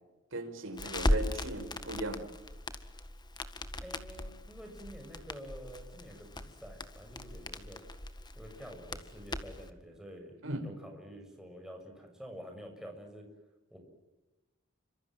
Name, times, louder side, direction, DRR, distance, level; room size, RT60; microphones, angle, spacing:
voice 1, 0.3-2.2 10.4-10.6, right 1 dB, 80° right, 5 dB, 6.0 m, -37 dB
Crackle, 0.8-9.7, left 1 dB, 20° left, 1.8 m, -38 dB
voice 2, 3.8-7.8 8.4-13.3 13.7-13.8, equal, 5° right, 2 dB, 7.1 m, -48 dB
29.5 x 26.0 x 7.6 m, 1.1 s
head